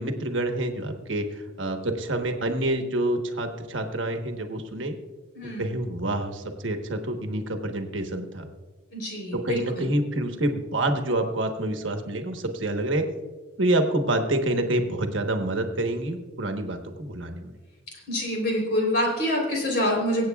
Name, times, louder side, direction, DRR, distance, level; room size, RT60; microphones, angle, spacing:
voice 1, 0.0-5.0 5.4-8.5 9.3-13.1 13.6-17.5, right 1 dB, 80° right, 5 dB, 1.2 m, -27 dB
voice 2, 5.3-5.7 8.9-9.9 18.1-20.3, left 1 dB, 55° left, -1 dB, 3.8 m, -26 dB
25.0 x 8.3 x 2.4 m, 1.2 s
head